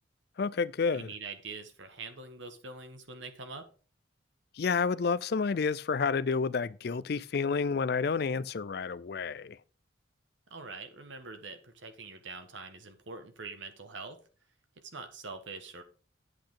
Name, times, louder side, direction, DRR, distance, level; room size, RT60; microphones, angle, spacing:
voice 1, 0.4-1.1 4.5-9.6, left 5 dB, 50° left, 0.4 m, -30 dB
voice 2, 0.9-3.6 10.5-14.2 14.8-15.8, right 4 dB, 70° right, 1.5 m, -44 dB
8.6 x 8.2 x 3.9 m
head